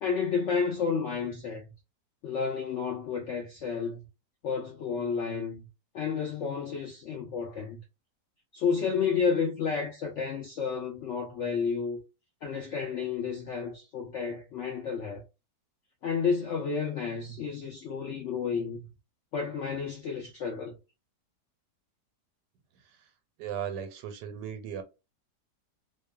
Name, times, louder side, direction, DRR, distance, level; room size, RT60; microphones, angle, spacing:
voice 1, 0.0-1.7 2.2-4.0 4.4-5.7 5.9-7.8 8.5-12.0 12.4-15.2 16.0-18.9 19.3-20.8, left 6 dB, 80° left, 0.6 m, -31 dB
voice 2, 23.4-24.8, right 8 dB, 90° right, 1.2 m, -37 dB
2.8 x 2.1 x 2.2 m
omnidirectional pair, 1.8 m